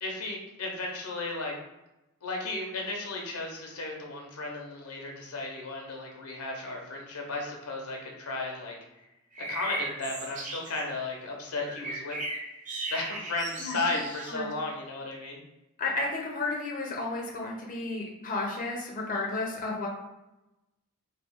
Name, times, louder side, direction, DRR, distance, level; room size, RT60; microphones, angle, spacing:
voice 1, 0.0-1.5 2.2-8.7 9.5-12.1 12.9-15.4, left 2 dB, 80° left, 0 dB, 0.8 m, -34 dB
sound 1, 9.3-10.8 11.6-14.3, right 1 dB, 35° right, 0.6 m, -37 dB
voice 2, 15.8-19.9, left 3 dB, 40° left, -2 dB, 0.6 m, -32 dB
3.0 x 2.3 x 3.5 m, 0.96 s
head